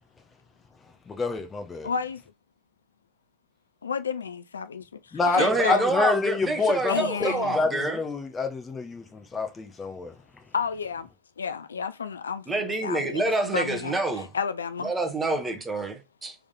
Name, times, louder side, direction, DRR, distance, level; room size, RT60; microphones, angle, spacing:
voice 1, 1.1-1.9 5.1-10.1, left 4 dB, 15° left, 0.9 m, -28 dB
voice 2, 1.8-2.2 3.8-5.9 6.9-7.6 10.5-11.1 11.4-14.9, left 6 dB, 70° left, 0.3 m, -31 dB
voice 3, 5.4-8.0 12.5-14.3 14.8-16.3, right 2 dB, 15° right, 1.1 m, -27 dB
3.5 x 3.5 x 3.8 m
figure-of-eight pair, 90°, 0 cm